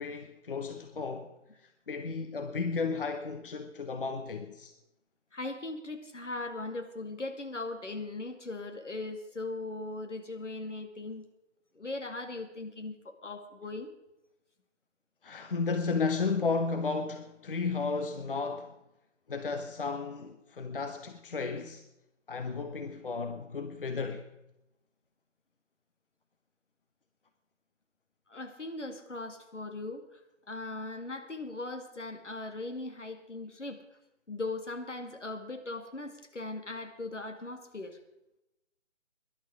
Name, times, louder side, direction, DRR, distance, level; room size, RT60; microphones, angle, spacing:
voice 1, 0.0-1.3 1.9-4.7 15.2-18.8 19.3-21.8 22.3-24.3, left 4 dB, 50° left, 1.0 m, -33 dB
voice 2, 5.3-11.3 11.7-13.9 28.3-30.2 30.5-33.8 34.3-38.0, left 2 dB, 75° left, 2.2 m, -39 dB
18.5 x 11.5 x 4.9 m
figure-of-eight pair, 150°, 36 cm